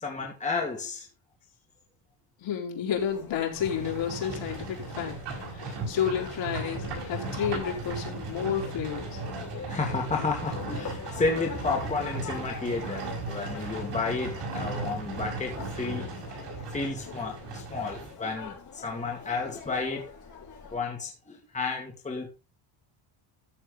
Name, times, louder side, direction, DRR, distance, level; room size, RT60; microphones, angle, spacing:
voice 1, 0.0-1.1 5.5-5.7 9.7-16.1 16.7-20.1 20.7-22.3, left 4 dB, 15° left, 1 dB, 2.1 m, -32 dB
voice 2, 2.4-5.1 5.5-9.2, left 9 dB, 60° left, 0 dB, 4.6 m, -31 dB
sound 1, 2.9-20.7, left 6 dB, 35° left, 5.8 m, -44 dB
Livestock farm animals working animals, 3.5-18.1, right 3 dB, 55° right, 6.3 m, -37 dB
13.5 x 7.3 x 4.0 m, 0.28 s
cardioid pair, 155°, 50 cm